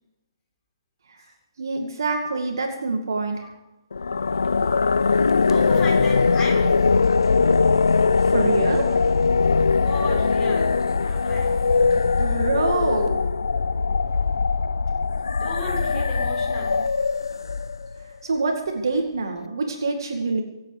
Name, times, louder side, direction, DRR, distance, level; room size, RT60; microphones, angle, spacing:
voice 1, 1.6-3.5 8.2-9.0 12.2-13.2 18.2-20.4, right 3 dB, 65° right, 3 dB, 2.2 m, -25 dB
sound 1, 3.9-18.0, left 4 dB, 75° left, 0.5 m, -21 dB
voice 2, 5.3-7.0 9.8-11.7 13.6-13.8 15.4-17.0, left 2 dB, 15° left, -3 dB, 6.5 m, -35 dB
25.5 x 8.6 x 5.0 m, 0.98 s
figure-of-eight pair, 135°, 2 cm